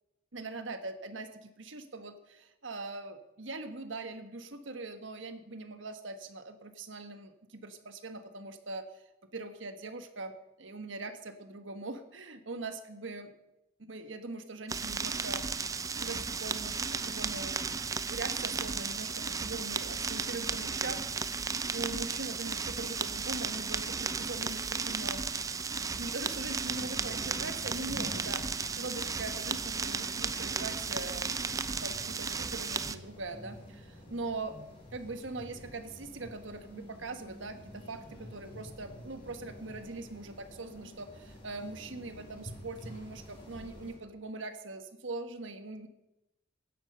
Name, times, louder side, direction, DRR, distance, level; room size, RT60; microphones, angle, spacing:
voice 1, 0.3-9.0 9.3-10.3 10.6-13.3 13.8-15.5 16.0-17.6 18.1-21.0 21.7-25.3 26.0-31.3 31.6-34.6 34.9-45.9, right 3 dB, 85° right, 8 dB, 1.5 m, -41 dB
sound 1, 14.7-32.9, right 5 dB, 15° right, 0.4 m, -34 dB
sound 2, 26.6-44.0, equal, 25° left, 5.8 m, -49 dB
17.0 x 11.0 x 5.5 m, 0.90 s
head